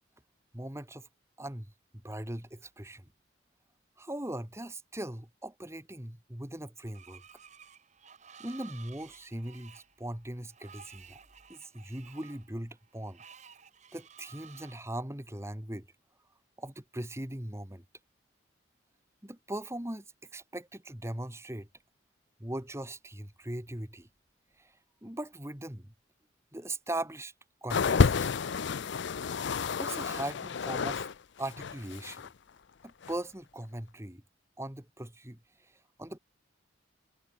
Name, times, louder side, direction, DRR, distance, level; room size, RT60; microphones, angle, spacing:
voice 1, 0.5-1.1 1.4-1.7 1.9-3.1 4.0-7.2 8.4-11.2 11.5-13.2 13.9-15.9 16.6-17.8 19.2-20.0 20.3-21.7 22.4-24.1 24.6-24.7 25.0-25.9 26.5-27.3 27.6-28.1 29.8-31.1 31.4-32.3 32.8-34.2 34.6-35.7 36.0-36.2, right 1 dB, 15° right, 1.8 m, -39 dB
Screech, 6.9-14.8, right 7 dB, 35° right, 1.2 m, -54 dB
sound 1, 27.7-31.1 31.4-32.3 33.0-33.1, left 5 dB, 60° left, 0.5 m, -29 dB
head